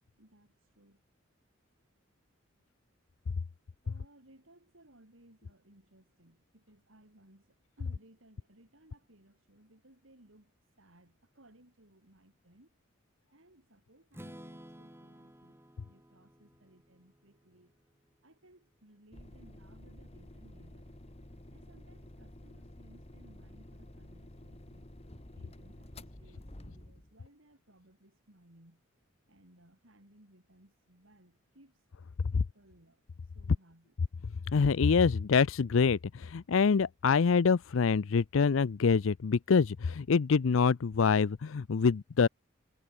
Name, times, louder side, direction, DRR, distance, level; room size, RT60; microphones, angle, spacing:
voice 1, 0.2-1.0 3.8-12.8 13.3-17.8 18.2-20.9 21.5-24.9 25.3-28.8 29.3-31.8 32.3-33.0 33.3-33.9, right 1 dB, 70° right, 4.8 m, -62 dB
Strum, 14.1-18.1, equal, 10° right, 3.9 m, -53 dB
sound 1, 19.1-27.2, left 1 dB, 30° left, 1.6 m, -51 dB
voice 2, 34.5-42.3, left 5 dB, 70° left, 0.5 m, -26 dB
head